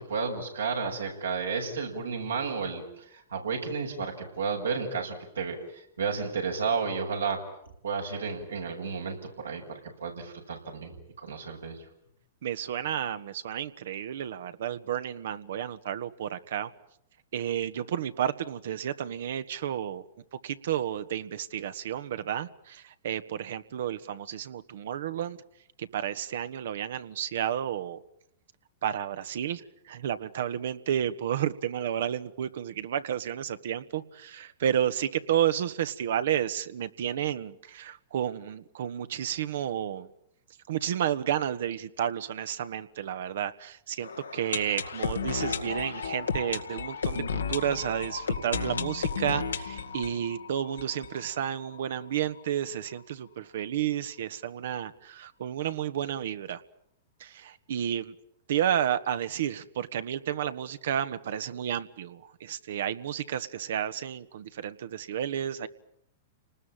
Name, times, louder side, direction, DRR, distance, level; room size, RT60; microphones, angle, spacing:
voice 1, 0.0-7.4 7.8-10.9 11.2-11.8, right 5 dB, 90° right, 1 dB, 6.8 m, -32 dB
voice 2, 12.4-16.7 17.3-20.0 20.4-25.4 25.8-28.0 28.8-29.6 29.9-40.1 40.7-56.6 57.2-58.1 58.5-65.7, right 10 dB, 70° right, 12 dB, 1.5 m, -31 dB
sound 1, 44.0-51.8 52.1-52.2 52.4-52.5 53.0-53.1, left 5 dB, 90° left, 2.0 m, -33 dB
30.0 x 20.0 x 9.2 m, 0.77 s
hypercardioid pair, 115°, 0 cm